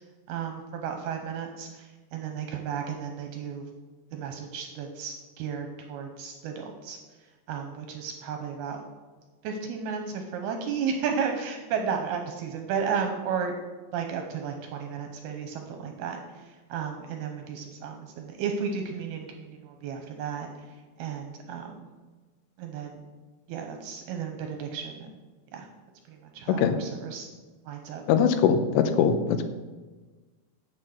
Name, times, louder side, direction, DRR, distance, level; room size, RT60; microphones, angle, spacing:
voice 1, 0.3-3.6 4.1-7.0 7.5-8.8 9.4-13.6 13.9-16.2 16.7-20.5 21.0-21.9 22.6-23.0 23.5-25.1 25.5-25.7 26.1-27.3 27.7-28.0, right 6 dB, 75° right, 4 dB, 2.5 m, -33 dB
voice 2, 28.1-29.5, left 7 dB, 80° left, 8 dB, 2.7 m, -22 dB
8.2 x 7.6 x 6.4 m, 1.3 s
omnidirectional pair, 5.3 m